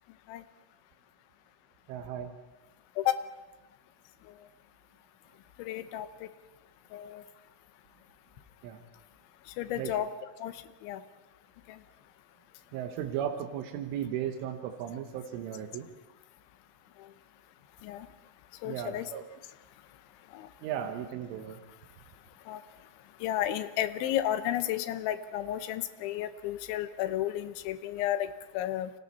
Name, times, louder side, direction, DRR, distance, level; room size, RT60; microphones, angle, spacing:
voice 1, 1.9-2.3 8.6-8.8 9.8-10.0 12.7-15.9 18.7-19.2 20.6-21.6, right 9 dB, 85° right, 5 dB, 3.6 m, -36 dB
voice 2, 5.6-6.3 6.9-7.2 9.5-10.1 10.4-11.0 11.7-11.8 17.0-17.1 17.8-18.1 18.6-19.1 20.3-20.5 22.5-22.6 23.2-28.9, left 12 dB, 80° left, 11 dB, 3.2 m, -33 dB
29.5 x 24.5 x 4.2 m, 1.1 s
omnidirectional pair, 5.5 m